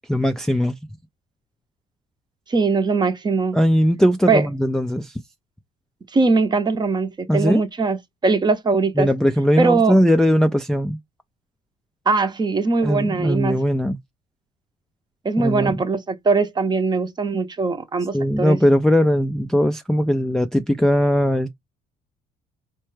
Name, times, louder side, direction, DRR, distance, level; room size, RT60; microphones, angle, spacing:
voice 1, 0.1-0.8 3.5-5.2 7.3-7.6 9.0-11.0 12.8-14.0 15.4-15.8 18.1-21.5, equal, 5° left, 0.3 m, -19 dB
voice 2, 2.5-3.6 4.3-4.4 6.1-9.1 9.6-10.0 12.1-13.6 15.2-18.6, right 4 dB, 25° right, 0.7 m, -21 dB
4.4 x 2.1 x 3.2 m
cardioid pair, 110°, 17 cm